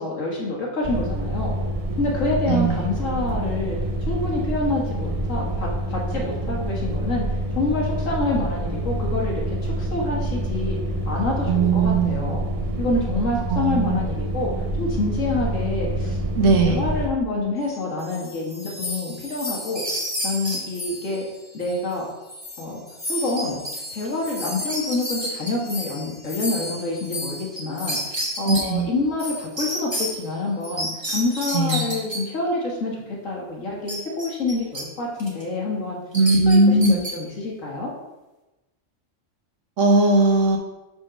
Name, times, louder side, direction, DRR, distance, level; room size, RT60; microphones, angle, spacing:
voice 1, 0.0-1.5 2.0-3.8 4.1-7.2 7.6-10.8 11.1-12.5 12.8-14.5 14.8-16.2 16.4-19.8 20.2-21.2 21.5-22.0 22.6-22.8 23.1-23.6 23.9-28.0 28.4-36.0 36.2-37.9, left 2 dB, 90° left, -2 dB, 1.9 m, -27 dB
sound 1, 0.8-17.1, right 1 dB, 45° right, 0.5 m, -27 dB
voice 2, 2.5-2.9 11.5-12.4 13.5-14.0 16.4-16.8 28.4-28.9 31.5-31.9 36.1-37.0 39.8-40.6, right 2 dB, 75° right, 2 dB, 1.4 m, -19 dB
sound 2, 17.7-22.0 22.2-28.2 28.5-28.7 29.2-29.5 29.9-30.3 30.6-30.8 31.3-31.6, left 1 dB, 10° left, 2.5 m, -35 dB
Mouse Squeaks, 19.5-20.6 23.4-23.7 24.0-24.1 24.5-25.5 27.6-27.7 27.9-28.6 29.6-30.1 30.8-32.2 33.9-34.8 35.2-35.4 36.1-37.1, right 1 dB, 20° right, 1.3 m, -29 dB
5.4 x 4.3 x 6.1 m, 1.1 s
omnidirectional pair, 1.3 m